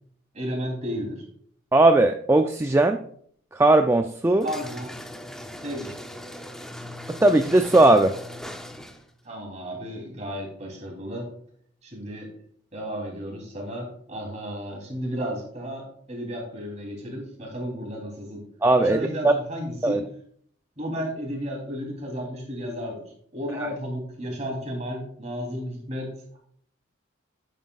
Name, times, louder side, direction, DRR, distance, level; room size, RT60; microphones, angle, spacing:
voice 1, 0.3-1.2 4.4-4.9 5.6-6.0 9.2-11.3 11.8-12.3 12.7-18.4 18.8-20.0 20.8-26.4, equal, 35° right, -1 dB, 3.3 m, -33 dB
voice 2, 1.7-3.0 3.5-4.5 7.1-8.2 18.6-19.3 19.8-20.0 23.6-23.7, right 2 dB, 15° right, 6 dB, 0.3 m, -18 dB
sound 1, 4.4-9.2, left 1 dB, 5° left, 0.7 m, -39 dB
11.0 x 9.3 x 2.4 m, 0.63 s
head